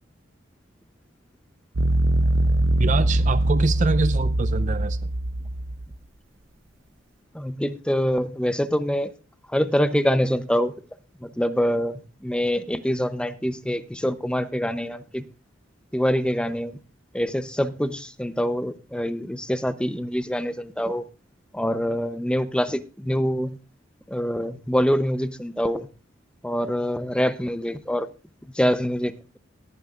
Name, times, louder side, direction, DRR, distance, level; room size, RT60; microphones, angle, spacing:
sound 1, 1.8-5.9, right 1 dB, 75° right, 0.8 m, -22 dB
voice 1, 2.8-5.0, right 3 dB, 40° right, 0.4 m, -25 dB
voice 2, 7.3-9.1 9.5-10.7 11.2-15.2 15.9-16.8 17.1-21.0 21.5-23.6 24.1-25.9 26.4-28.1 28.5-29.4, equal, 5° left, 0.7 m, -25 dB
19.5 x 9.7 x 2.5 m
head